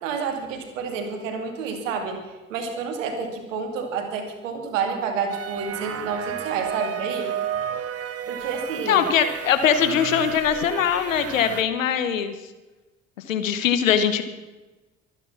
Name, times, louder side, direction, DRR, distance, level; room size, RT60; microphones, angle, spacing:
voice 1, 0.0-7.3 8.3-9.0, right 5 dB, 75° right, 5 dB, 2.6 m, -29 dB
sound 1, 5.3-11.6, right 9 dB, 35° right, 1.2 m, -32 dB
voice 2, 8.9-12.3 13.3-14.2, left 8 dB, 80° left, 10 dB, 1.3 m, -21 dB
24.0 x 9.7 x 6.0 m, 1.2 s
figure-of-eight pair, 50°, 39 cm